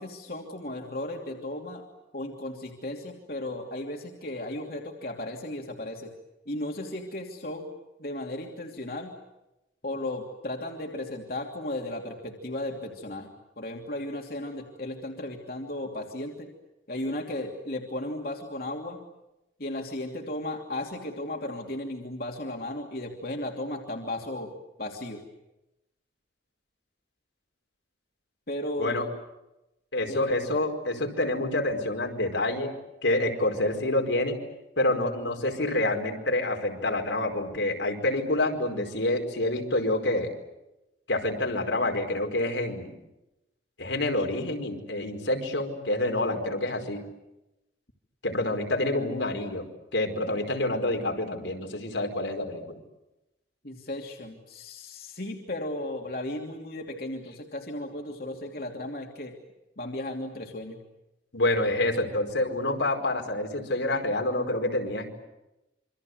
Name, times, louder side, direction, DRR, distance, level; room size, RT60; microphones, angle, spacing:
voice 1, 0.0-1.8 2.1-6.1 6.5-7.7 8.0-9.1 9.8-13.3 13.6-16.5 16.9-19.0 19.6-25.2 28.5-28.9 30.1-30.3 53.6-59.3 59.8-60.8, left 1 dB, 55° left, 1 dB, 2.9 m, -35 dB
voice 2, 29.9-32.7 33.0-34.4 34.8-40.3 41.1-43.0 43.8-47.0 48.2-49.6 49.9-52.8 61.3-65.1, left 1 dB, 85° left, 3 dB, 4.8 m, -27 dB
27.5 x 25.5 x 7.9 m, 0.94 s
head